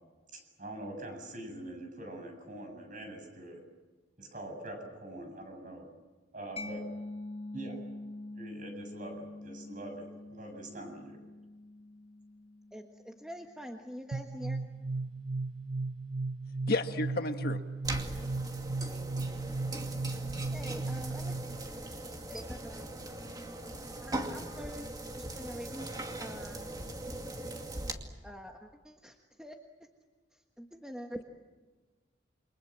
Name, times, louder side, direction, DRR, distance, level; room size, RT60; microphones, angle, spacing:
voice 1, 0.3-3.6 4.2-5.9 6.3-6.8 7.5-7.8 8.3-11.2, right 1 dB, 45° right, 4 dB, 7.6 m, -44 dB
Mallet percussion, 6.6-13.9, left 2 dB, 35° left, 1.8 m, -45 dB
voice 2, 12.7-14.6 20.5-21.4 22.3-22.9 24.0-24.9 25.2-25.9 26.2-26.7 28.2-29.6 30.3-31.2, equal, 5° right, 2 dB, 1.5 m, -45 dB
sound 1, 14.1-21.7, right 3 dB, 85° right, 0.8 m, -36 dB
voice 3, 16.7-17.6, left 2 dB, 55° left, 7 dB, 1.5 m, -31 dB
sound 2, 17.8-27.9, right 1 dB, 20° right, 2.3 m, -40 dB
29.0 x 24.0 x 7.6 m, 1.3 s
head